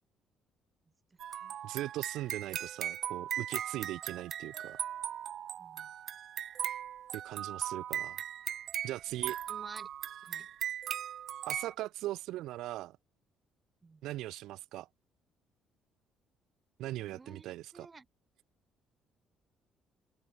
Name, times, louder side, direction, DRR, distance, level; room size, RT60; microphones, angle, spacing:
sound 1, 1.2-11.7, right 10 dB, 55° right, 0.4 m, -38 dB
voice 1, 1.6-4.8 7.1-8.2 8.8-9.4 11.5-13.0 14.0-14.9 16.8-17.9, right 15 dB, 80° right, 2.1 m, -39 dB
voice 2, 9.5-9.9 10.2-10.5 13.8-14.0 17.1-18.0, right 4 dB, 20° right, 3.0 m, -52 dB
cardioid pair, 120°, 0 cm